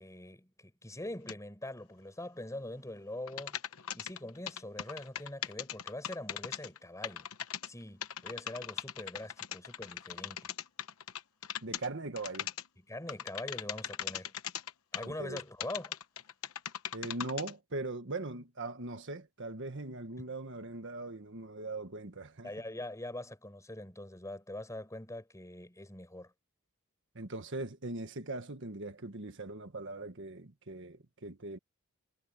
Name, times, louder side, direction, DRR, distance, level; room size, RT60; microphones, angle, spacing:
voice 1, 0.0-3.6 3.9-7.3 7.6-10.5 12.9-14.3 14.9-16.0 20.2-20.3 22.4-26.3, left 1 dB, 15° left, 5.5 m, -43 dB
sound 1, 1.3-1.4 3.3-6.8 7.0-7.7 8.0-11.9 12.2-12.7 13.1-15.1 15.4-17.5, left 10 dB, 65° left, 1.0 m, -39 dB
voice 2, 11.6-12.5 15.0-15.4 16.9-22.5 27.1-31.6, right 2 dB, 55° right, 1.5 m, -40 dB
head